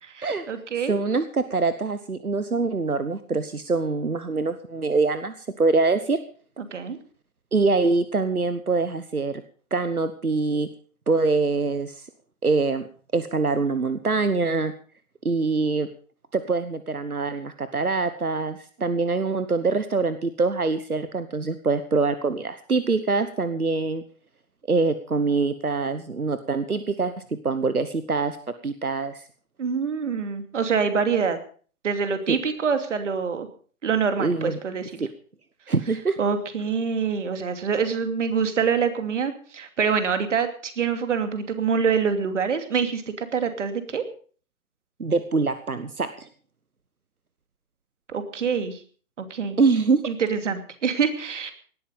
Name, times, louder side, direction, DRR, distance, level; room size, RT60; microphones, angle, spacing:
voice 1, 0.0-1.0 6.6-7.0 29.6-31.4 31.8-33.5 33.8-35.0 36.2-44.0 48.1-48.8 49.2-49.6 50.0-51.5, right 6 dB, 55° right, 8 dB, 2.8 m, -25 dB
voice 2, 0.9-6.2 7.5-9.4 9.7-10.7 11.1-12.1 12.4-12.9 13.1-14.7 15.2-15.9 16.3-24.0 24.7-27.1 27.4-28.4 28.6-29.2 32.3-32.4 34.2-34.6 35.7-36.2 45.0-46.3 49.6-50.0, right 3 dB, 90° right, 12 dB, 1.3 m, -24 dB
18.5 x 12.0 x 5.3 m, 0.43 s
figure-of-eight pair, 130°, 42 cm